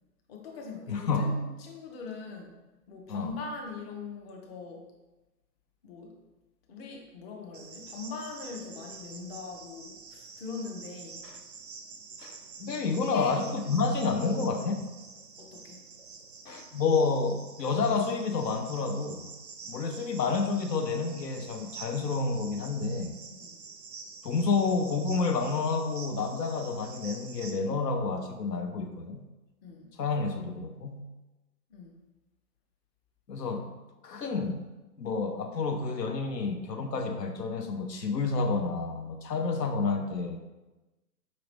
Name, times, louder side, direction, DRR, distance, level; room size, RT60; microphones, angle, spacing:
voice 1, 0.3-2.6 2.9-4.9 5.8-6.2 6.7-11.2 13.1-13.3 15.4-15.8 23.3-23.6 29.6-29.9 31.7-32.0, left 4 dB, 40° left, 1 dB, 0.8 m, -41 dB
voice 2, 0.9-1.4 3.1-3.4 11.2-11.3 12.2-14.9 16.5-19.3 19.7-23.1 24.2-29.2 30.0-31.1 33.3-33.7 34.0-34.6 35.0-40.4, left 4 dB, 80° left, 5 dB, 0.7 m, -29 dB
Cricket, 7.5-27.5, right 5 dB, 35° right, 0.4 m, -47 dB
5.1 x 2.9 x 3.1 m, 1.1 s
figure-of-eight pair, 125°, 48 cm